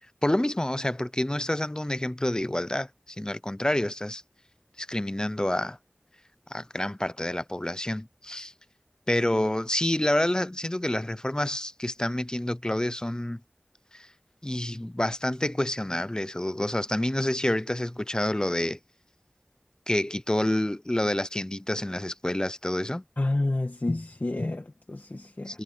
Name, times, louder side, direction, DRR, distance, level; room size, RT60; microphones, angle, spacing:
voice 1, 0.2-4.2 4.8-5.8 6.5-8.5 9.1-13.4 13.9-14.1 14.4-18.8 19.9-23.0 25.5-25.6, left 1 dB, 20° left, 0.7 m, -28 dB
voice 2, 23.2-25.6, left 2 dB, 60° left, 1.8 m, -29 dB
wide cardioid pair, 40°, 3 cm